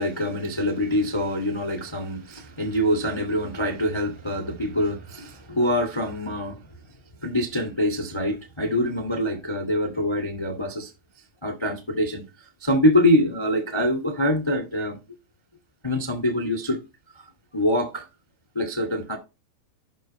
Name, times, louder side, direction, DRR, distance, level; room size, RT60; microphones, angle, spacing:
voice 1, 0.0-6.6 7.2-10.9 11.4-15.0 15.8-16.8 17.1-17.2 17.5-18.1 18.5-19.2, left 1 dB, 15° left, 0.9 m, -25 dB
9.0 x 6.5 x 4.4 m
omnidirectional pair, 5.2 m